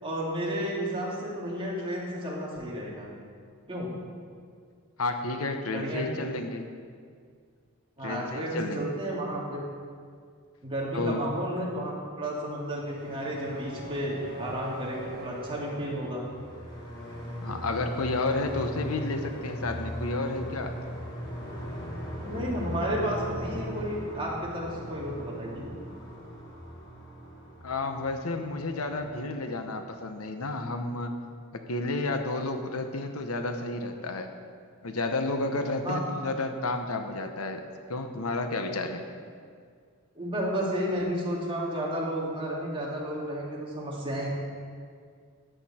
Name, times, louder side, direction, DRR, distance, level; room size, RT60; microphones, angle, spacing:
voice 1, 0.0-3.1 3.7-3.9 5.7-6.1 8.0-9.6 10.6-16.2 22.2-25.7 35.8-36.0 40.1-44.3, equal, 25° right, -4 dB, 2.7 m, -32 dB
voice 2, 5.0-6.7 8.0-8.8 10.9-11.3 17.4-20.7 27.6-31.1 31.5-34.3 34.8-37.6 37.9-39.0, left 2 dB, 80° left, 6 dB, 1.0 m, -31 dB
sound 1, 12.6-29.5, equal, 20° left, 2.8 m, -39 dB
13.5 x 10.5 x 4.4 m, 2.1 s
head